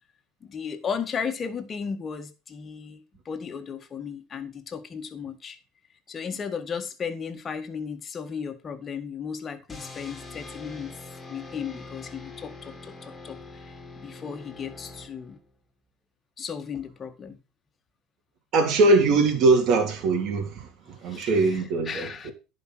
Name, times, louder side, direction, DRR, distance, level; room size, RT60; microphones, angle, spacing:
voice 1, 0.4-5.6 6.1-10.9 11.3-15.4 16.4-17.4 21.1-22.3, left 6 dB, 30° left, 1.8 m, -35 dB
sound 1, 9.7-15.6, left 2 dB, 15° left, 3.7 m, -43 dB
voice 2, 18.5-22.3, right 3 dB, 55° right, 3.1 m, -22 dB
10.5 x 5.3 x 6.3 m
supercardioid pair, 100°, 0 cm